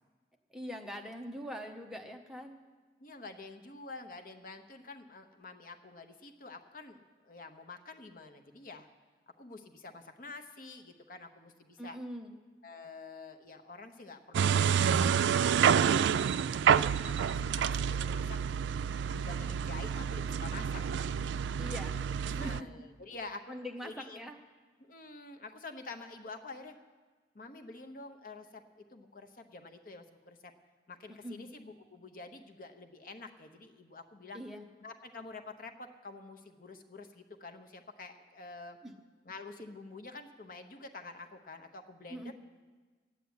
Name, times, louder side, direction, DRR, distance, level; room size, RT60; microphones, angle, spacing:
voice 1, 0.5-2.6 11.8-12.3 21.6-21.9 22.2-22.9 23.5-24.4 31.2-31.5 34.3-34.7 38.8-38.9 42.1-42.3, equal, 5° right, 2 dB, 0.9 m, -43 dB
voice 2, 3.0-8.9 9.4-12.0 12.6-15.1 15.5-16.3 17.0-18.4 19.0-21.1 22.4-23.5 23.8-24.2 24.8-26.8 27.3-30.5 30.9-34.4 34.8-38.8 39.3-42.3, left 3 dB, 50° left, 6 dB, 0.9 m, -48 dB
sound 1, 14.3-22.6, right 7 dB, 85° right, 0.3 m, -28 dB
12.5 x 8.3 x 9.6 m, 1.4 s
head